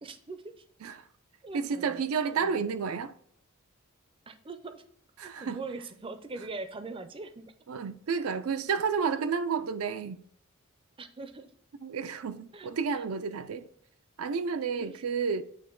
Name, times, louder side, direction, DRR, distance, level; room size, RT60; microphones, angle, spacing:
voice 1, 0.0-0.6 1.4-2.5 4.3-4.8 5.2-7.5 8.9-9.0 11.0-11.5 12.5-12.7 13.0-13.1 14.8-15.0, right 3 dB, 25° right, 0.5 m, -42 dB
voice 2, 1.5-3.1 5.2-5.6 7.7-10.2 11.8-13.7 14.2-15.4, right 5 dB, 80° right, 0.4 m, -31 dB
8.8 x 3.0 x 3.7 m
head